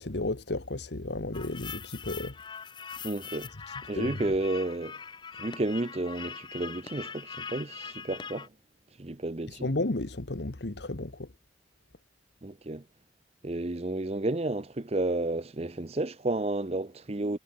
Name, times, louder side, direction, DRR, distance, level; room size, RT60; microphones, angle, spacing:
voice 1, 0.0-2.4 3.5-4.2 9.5-11.3, left 2 dB, 70° left, 1.3 m, -33 dB
sound 1, 1.3-8.5, left 6 dB, 25° left, 0.6 m, -42 dB
voice 2, 3.0-3.5 3.9-5.0 5.4-8.5 9.0-9.7 12.4-12.8 13.4-17.4, right 2 dB, 35° right, 0.8 m, -31 dB
head